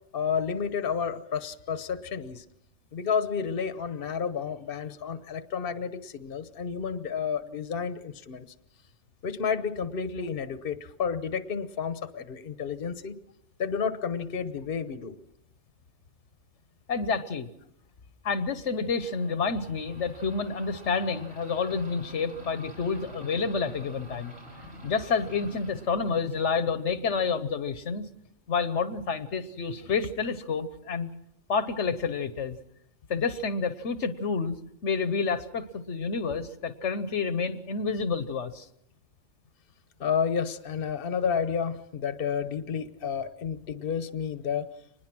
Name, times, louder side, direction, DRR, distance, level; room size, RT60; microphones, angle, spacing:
voice 1, 0.1-2.4 2.9-8.5 9.2-13.2 13.6-15.2 40.0-44.7, left 6 dB, 55° left, 12 dB, 1.2 m, -31 dB
voice 2, 16.9-17.5 18.2-24.3 24.8-28.1 28.5-31.1 31.5-32.6 33.1-34.6 34.8-38.7, left 5 dB, 80° left, 12 dB, 1.3 m, -29 dB
sound 1, 18.8-28.2, equal, 60° right, 4.8 m, -48 dB
25.0 x 20.5 x 6.1 m, 0.77 s
omnidirectional pair, 1.2 m